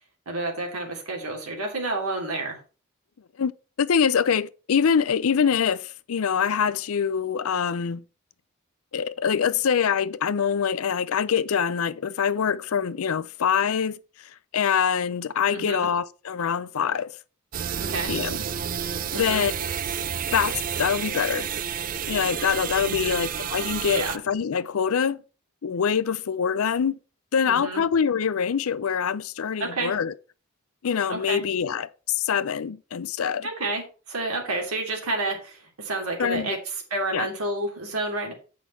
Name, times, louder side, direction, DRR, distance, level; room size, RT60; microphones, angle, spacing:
voice 1, 0.3-2.6 15.5-15.9 17.8-18.1 19.1-19.4 22.8-23.2 23.9-24.2 27.4-27.8 29.6-29.9 31.1-31.4 33.4-36.6 36.9-38.3, right 2 dB, 90° right, 2.8 m, -30 dB
voice 2, 3.8-8.0 8.9-14.0 14.5-17.1 18.1-18.4 19.1-19.5 20.3-21.5 22.1-25.2 25.6-27.0 27.3-30.1 30.8-33.5 36.2-36.6 37.1-37.3, left 7 dB, 75° left, 0.5 m, -24 dB
sound 1, 17.5-24.2, right 8 dB, 40° right, 0.4 m, -30 dB
8.2 x 5.9 x 4.4 m
head